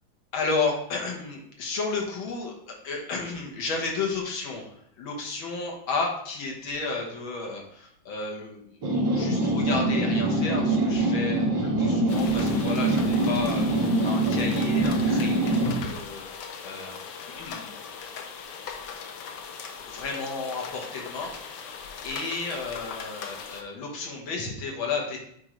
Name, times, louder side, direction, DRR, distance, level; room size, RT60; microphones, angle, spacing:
voice 1, 0.3-8.8 9.1-17.0 17.3-17.7 19.9-25.2, left 4 dB, 90° left, -1 dB, 2.2 m, -33 dB
sound 1, 8.8-15.9, right 2 dB, 65° right, 2.5 m, -24 dB
sound 2, 12.1-23.6, left 6 dB, 70° left, 1.3 m, -40 dB
9.4 x 3.9 x 3.1 m, 0.69 s
omnidirectional pair, 2.1 m